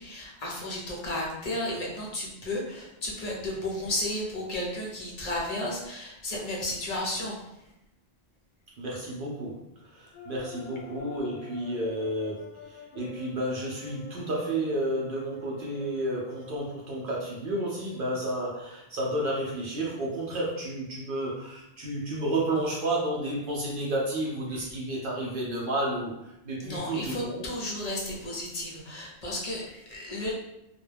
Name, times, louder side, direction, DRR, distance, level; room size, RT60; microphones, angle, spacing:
voice 1, 0.0-7.4 26.6-30.3, left 1 dB, 40° left, -3 dB, 0.8 m, -33 dB
voice 2, 8.8-27.5, right 1 dB, 60° right, -4 dB, 0.7 m, -31 dB
sound 1, 10.1-16.6, left 4 dB, 80° left, 0.8 m, -46 dB
2.3 x 2.1 x 3.2 m, 0.87 s
omnidirectional pair, 1.1 m